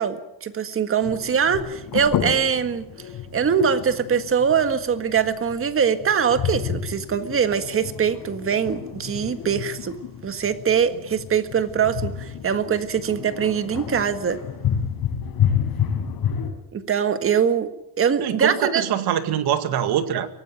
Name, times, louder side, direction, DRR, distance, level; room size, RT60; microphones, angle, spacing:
voice 1, 0.0-2.9 3.3-10.0 10.2-14.4 16.7-17.7 18.0-18.8, right 7 dB, 35° right, 10 dB, 1.7 m, -22 dB
sound 1, 1.0-16.5, left 8 dB, 70° left, 4.8 m, -30 dB
voice 2, 18.2-20.3, right 10 dB, 75° right, 10 dB, 2.1 m, -23 dB
24.0 x 18.0 x 9.2 m, 0.86 s
cardioid pair, 165°, 39 cm